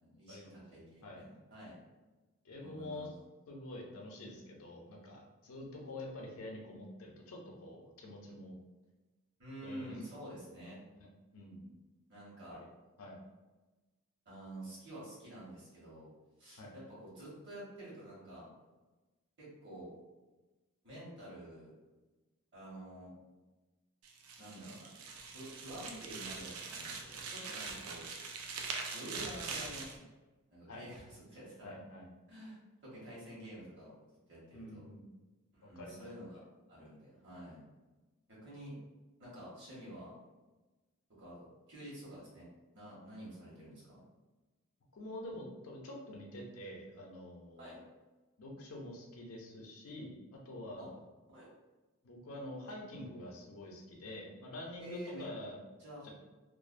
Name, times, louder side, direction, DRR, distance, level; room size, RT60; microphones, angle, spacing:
voice 1, 0.0-1.8 2.6-3.1 9.4-10.8 12.1-12.6 14.2-16.1 16.4-18.5 19.4-19.9 20.8-21.7 22.5-23.1 24.4-25.0 25.3-28.1 28.9-30.0 30.5-31.7 32.3-34.0 34.3-34.8 35.5-36.4 36.7-37.6 38.3-38.7 39.2-40.1 41.2-42.5 42.7-44.0 47.6-47.8 50.8-50.9 51.3-51.5 54.8-55.3 55.8-56.1, right 1 dB, 55° right, -7 dB, 1.1 m, -49 dB
voice 2, 2.4-3.1 3.5-8.6 9.6-10.0 10.5-10.7 11.3-11.7 12.5-12.7 13.0-13.2 16.6-16.7 30.7-30.8 31.6-32.0 34.5-35.1 35.6-36.0 44.9-47.8 48.4-51.0 52.0-55.6 56.0-56.1, left 1 dB, 75° left, -1 dB, 0.5 m, -47 dB
sound 1, 24.0-30.0, right 4 dB, 85° right, 0.4 m, -43 dB
2.4 x 2.0 x 2.5 m, 1.2 s
head